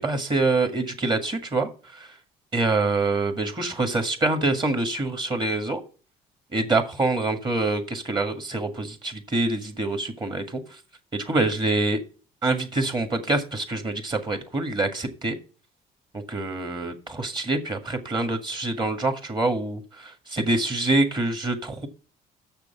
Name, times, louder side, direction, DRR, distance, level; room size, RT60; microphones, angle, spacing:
voice 1, 0.0-2.1 2.5-5.8 6.5-10.6 11.1-12.0 12.4-15.4 16.1-21.9, right 2 dB, 25° right, 6 dB, 1.8 m, -25 dB
6.8 x 6.6 x 6.8 m, 0.37 s
cardioid pair, 110°, 17 cm